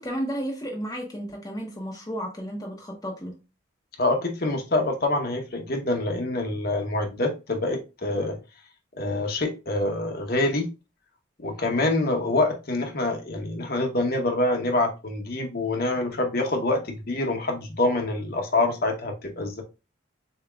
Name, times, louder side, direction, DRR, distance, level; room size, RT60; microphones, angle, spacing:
voice 1, 0.0-3.4, equal, 20° left, 0.7 m, -33 dB
voice 2, 4.0-8.4 9.0-10.7 11.4-19.6, left 2 dB, 45° left, 0.9 m, -26 dB
6.8 x 2.8 x 2.4 m
head